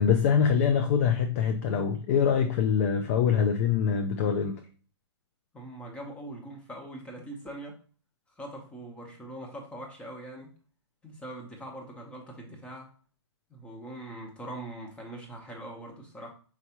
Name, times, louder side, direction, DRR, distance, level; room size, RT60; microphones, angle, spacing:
voice 1, 0.0-4.6, left 7 dB, 30° left, 0.3 m, -24 dB
voice 2, 5.5-7.8 8.3-10.5 11.0-12.9 13.5-16.3, right 1 dB, 5° left, 0.9 m, -42 dB
4.6 x 3.2 x 2.8 m
hypercardioid pair, 135°, 15 cm